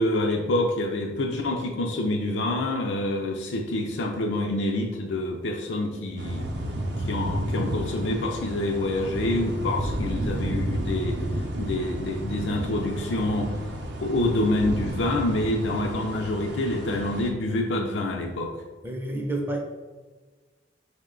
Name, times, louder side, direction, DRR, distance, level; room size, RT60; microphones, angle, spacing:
voice 1, 0.0-6.5 7.1-11.2 11.5-13.5 14.0-18.5, left 1 dB, 80° left, 0 dB, 0.4 m, -27 dB
sound 1, 6.2-17.3, right 1 dB, 65° right, 0.5 m, -31 dB
voice 2, 18.8-19.6, right 1 dB, 10° right, 1 dB, 0.4 m, -29 dB
5.1 x 2.1 x 3.7 m, 1.3 s
head